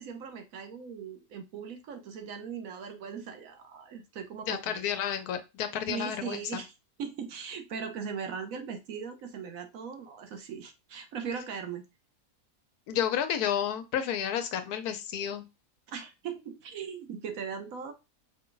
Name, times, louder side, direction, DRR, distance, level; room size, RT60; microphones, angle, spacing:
voice 1, 0.0-4.9 5.9-6.7 7.0-11.8 15.9-17.9, right 6 dB, 70° right, 7 dB, 1.1 m, -39 dB
voice 2, 4.5-6.6 12.9-15.5, left 9 dB, 85° left, 9 dB, 1.2 m, -31 dB
5.0 x 2.2 x 3.8 m, 0.25 s
omnidirectional pair, 1.6 m